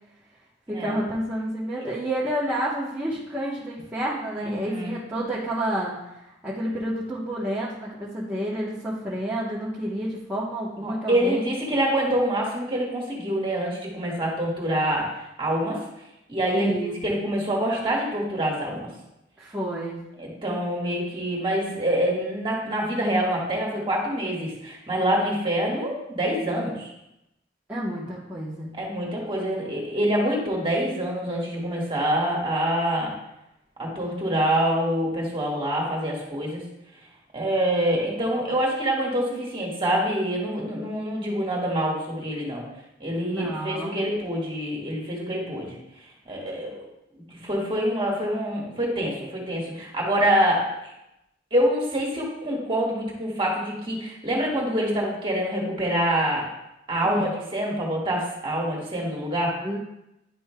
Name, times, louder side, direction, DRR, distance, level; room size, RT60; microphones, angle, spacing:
voice 1, 0.7-5.9 6.4-11.5 16.5-16.9 19.4-20.0 27.7-28.7 43.3-44.0 57.0-57.3 59.6-59.8, right 1 dB, 10° right, -9 dB, 1.0 m, -29 dB
voice 2, 4.4-5.0 10.8-15.1 15.4-15.8 16.3-16.7 17.0-18.9 20.2-26.9 28.7-33.1 33.8-36.6 37.3-42.6 43.0-45.8 46.2-46.8 47.3-50.7 51.5-56.5 56.9-59.5, right 1 dB, 25° right, -3 dB, 1.6 m, -26 dB
10.0 x 5.4 x 2.2 m, 0.89 s
head